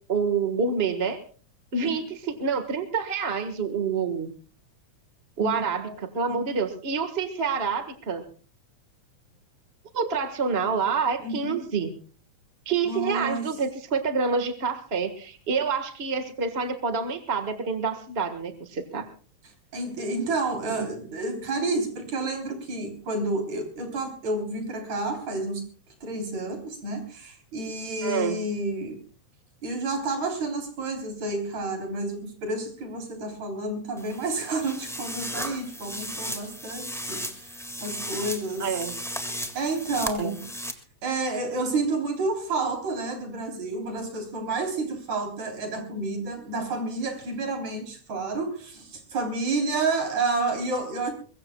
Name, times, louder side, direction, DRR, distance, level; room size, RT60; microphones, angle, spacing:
voice 1, 0.1-1.2 1.7-4.3 5.4-8.2 9.9-12.0 12.6-19.1 28.0-28.4 38.6-38.9 40.2-40.3, right 5 dB, 35° right, 8 dB, 1.1 m, -27 dB
voice 2, 11.2-11.6 12.8-13.5 19.7-25.6 26.0-29.0 29.6-38.9 39.5-40.4 41.0-51.1, right 3 dB, 65° right, 3 dB, 4.9 m, -30 dB
sound 1, 34.0-40.7, equal, ahead, 1.1 m, -35 dB
22.5 x 22.5 x 2.3 m, 0.39 s
omnidirectional pair, 3.4 m